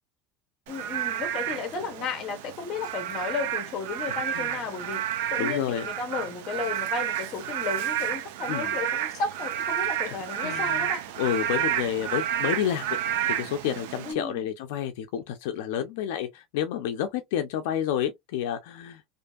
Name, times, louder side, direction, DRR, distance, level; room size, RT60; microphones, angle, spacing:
voice 1, 0.7-5.0 5.3-11.0 14.0-14.5, left 4 dB, 30° left, 0.8 m, -33 dB
Frog / Rain, 0.7-14.1, right 11 dB, 70° right, 0.4 m, -30 dB
voice 2, 4.1-4.6 5.4-5.9 8.5-8.7 10.4-10.9 11.2-13.0 13.3-19.1, left 10 dB, 70° left, 0.4 m, -30 dB
2.6 x 2.5 x 2.3 m
cardioid pair, 175°, 0 cm